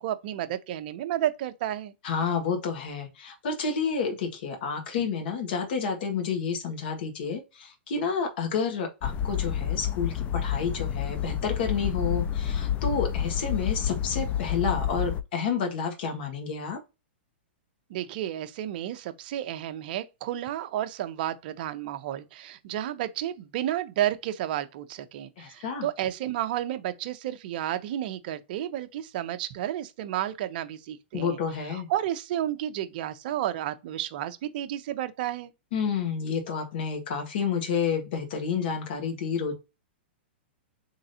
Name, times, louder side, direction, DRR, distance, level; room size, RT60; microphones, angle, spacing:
voice 1, 0.0-1.9 17.9-31.4 31.7-35.5, right 12 dB, 50° right, 0.6 m, -31 dB
voice 2, 2.0-16.8 25.4-25.9 31.1-31.9 35.7-39.5, left 6 dB, 60° left, 1.6 m, -30 dB
sound 1, 9.0-15.2, left 9 dB, 25° left, 0.4 m, -29 dB
3.8 x 3.4 x 2.7 m
hypercardioid pair, 135°, 6 cm